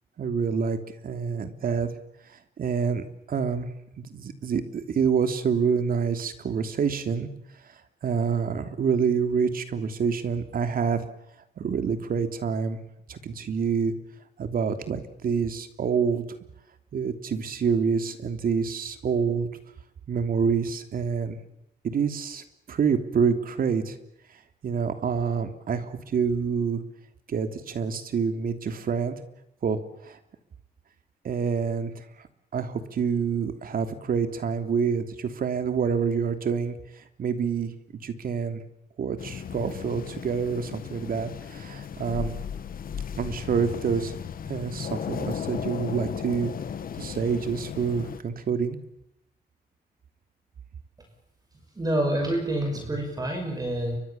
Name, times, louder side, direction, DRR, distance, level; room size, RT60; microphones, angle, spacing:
voice 1, 0.2-1.9 2.3-3.7 4.0-7.3 7.6-11.0 11.6-12.8 13.1-13.9 14.4-16.3 16.9-19.5 20.1-21.4 21.8-24.0 24.6-26.8 27.3-29.2 29.6-30.2 31.2-32.0 32.5-38.6 39.0-42.4 43.2-44.2 44.5-46.5 47.0-48.8, right 6 dB, 60° right, 8 dB, 3.1 m, -27 dB
sound 1, 39.2-48.2, left 8 dB, 60° left, 1.8 m, -35 dB
voice 2, 51.8-54.0, right 1 dB, 20° right, 4 dB, 6.0 m, -27 dB
30.0 x 25.0 x 7.2 m, 0.80 s
cardioid pair, 125°, 17 cm